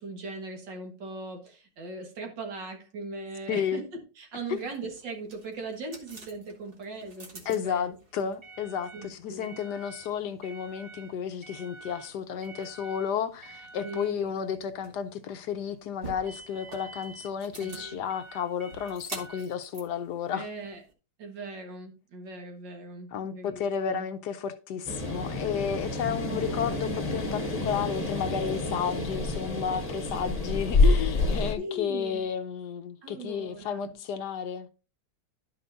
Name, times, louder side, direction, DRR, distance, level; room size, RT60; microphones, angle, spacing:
voice 1, 0.0-8.3 8.9-9.6 13.8-14.3 17.6-18.0 20.3-20.8 21.2-23.6 23.9-24.1 26.2-26.5 31.6-32.2 33.0-33.9, right 2 dB, 70° right, 2.3 m, -39 dB
voice 2, 3.5-3.8 4.5-4.6 7.5-20.5 23.1-34.7, left 7 dB, 70° left, 1.1 m, -32 dB
sound 1, 4.5-20.9, right 3 dB, 35° right, 1.4 m, -47 dB
sound 2, 24.9-31.6, left 2 dB, 25° left, 0.9 m, -28 dB
12.0 x 5.6 x 2.7 m
omnidirectional pair, 2.1 m